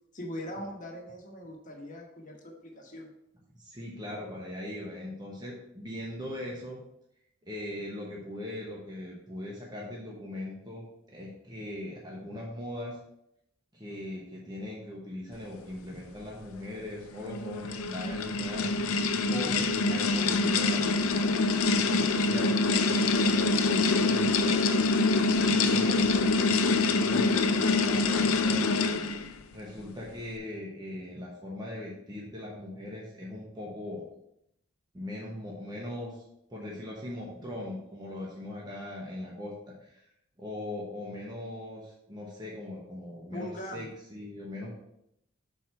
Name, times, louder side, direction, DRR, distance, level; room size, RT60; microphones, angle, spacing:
voice 1, 0.1-3.1 43.3-43.9, equal, 40° left, 0 dB, 1.2 m, -41 dB
voice 2, 3.5-6.8 7.4-13.0 13.7-18.7 19.3-28.8 29.5-34.0 34.9-36.2 36.5-40.1 40.4-44.7, left 1 dB, 20° right, -3 dB, 1.0 m, -40 dB
sound 1, 17.1-29.3, left 3 dB, 85° left, 0.5 m, -25 dB
5.9 x 4.6 x 4.4 m, 0.78 s
head